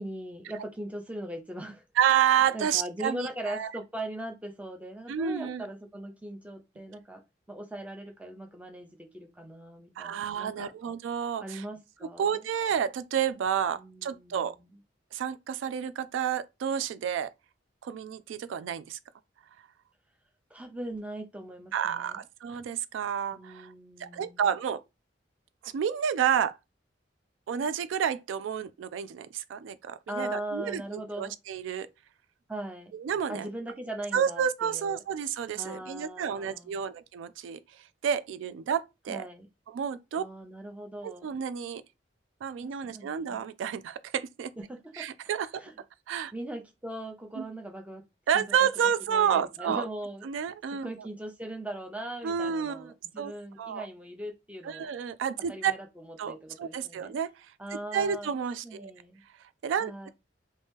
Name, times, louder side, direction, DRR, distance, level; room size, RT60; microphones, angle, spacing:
voice 1, 0.0-1.8 2.5-7.2 7.5-10.7 11.4-12.4 13.7-14.7 20.5-22.2 23.3-24.4 30.1-31.3 32.5-32.9 33.3-35.0 35.5-36.9 39.1-39.5 40.2-41.3 42.6-43.4 44.6-45.1 45.5-45.7 46.3-48.0 48.3-48.7 49.1-50.3 50.7-54.9 55.5-57.1 57.6-58.3 58.6-59.2 59.8-60.1, right 1 dB, 5° right, 0.5 m, -40 dB
voice 2, 2.0-3.7 5.1-5.6 10.0-11.6 12.2-14.5 15.1-17.3 17.8-19.0 21.7-23.7 24.0-24.8 25.6-26.6 27.5-30.8 31.2-31.9 32.9-33.5 34.1-37.6 38.0-39.2 39.7-40.2 41.0-41.8 42.4-44.5 45.0-45.6 46.1-46.3 47.4-47.5 48.3-49.8 50.2-50.9 52.2-53.3 53.6-53.9 54.6-55.7 56.2-57.3 57.9-58.9 59.6-60.1, right 8 dB, 90° right, 0.3 m, -30 dB
2.8 x 2.6 x 3.6 m
head